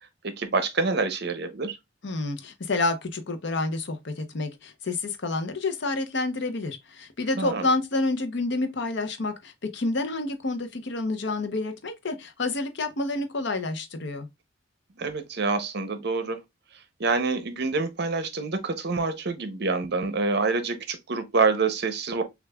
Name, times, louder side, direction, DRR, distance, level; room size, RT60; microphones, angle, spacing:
voice 1, 0.2-1.8 7.4-7.7 15.0-16.4 17.0-22.2, right 4 dB, 55° right, 0.7 m, -26 dB
voice 2, 2.0-14.3, left 2 dB, 60° left, 0.7 m, -29 dB
6.4 x 2.4 x 2.3 m
head